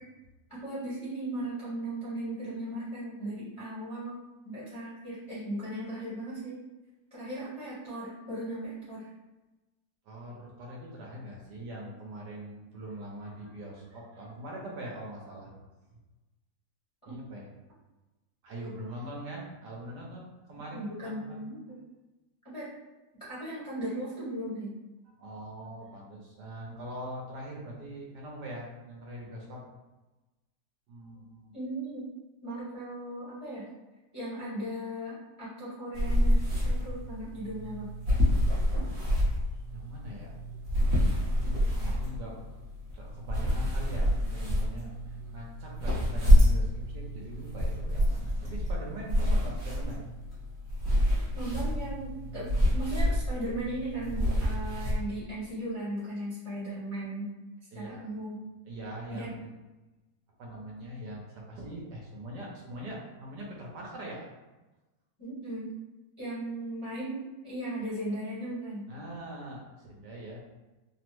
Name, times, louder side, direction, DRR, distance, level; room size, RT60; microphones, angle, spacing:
voice 1, 0.5-4.2 4.4-6.6 7.1-9.1 17.0-17.1 20.7-21.8 22.4-22.7 23.2-24.7 31.5-32.0 32.4-33.6 34.1-37.9 51.3-57.3 57.7-58.4 59.1-59.3 65.2-65.7 66.2-68.8, right 1 dB, 25° left, -11 dB, 0.7 m, -37 dB
voice 2, 10.0-15.6 17.1-17.5 18.4-21.4 25.1-29.6 30.9-31.6 39.7-40.3 41.4-42.4 42.9-50.0 57.7-58.1 58.6-59.5 60.4-64.3 68.9-70.4, right 1 dB, 70° right, -3 dB, 1.2 m, -42 dB
sound 1, 35.9-55.0, equal, 40° right, 0.7 m, -27 dB
3.5 x 2.0 x 3.0 m, 1.1 s
omnidirectional pair, 2.0 m